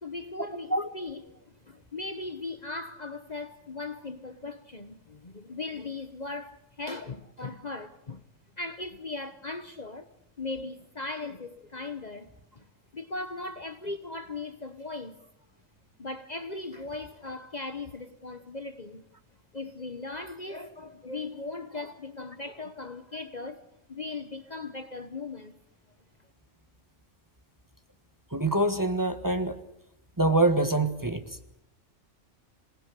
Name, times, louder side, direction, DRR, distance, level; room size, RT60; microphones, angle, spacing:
voice 1, 0.0-8.2 8.6-10.1 10.4-12.3 12.5-12.6 12.9-15.2 16.0-19.0 19.5-23.6 23.9-25.6, left 3 dB, 35° left, 1.2 m, -38 dB
voice 2, 28.3-29.6 30.2-31.2, right 2 dB, 15° right, 1.4 m, -25 dB
27.0 x 19.0 x 8.4 m
omnidirectional pair, 1.3 m